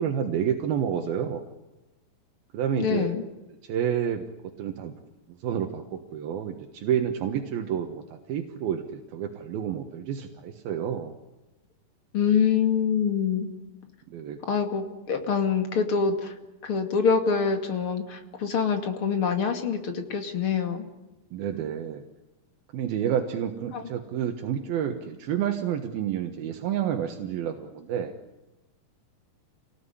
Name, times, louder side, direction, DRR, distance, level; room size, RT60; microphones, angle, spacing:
voice 1, 0.0-1.4 2.5-3.2 3.6-4.3 4.6-4.9 5.3-11.1 14.1-14.4 21.3-22.0 22.7-28.1, right 9 dB, 80° right, 5 dB, 3.3 m, -29 dB
voice 2, 2.8-3.2 12.1-13.5 14.5-16.3 16.6-20.8 23.7-23.8, left 6 dB, 40° left, 6 dB, 2.9 m, -25 dB
28.0 x 19.0 x 9.9 m, 1.0 s
omnidirectional pair, 4.2 m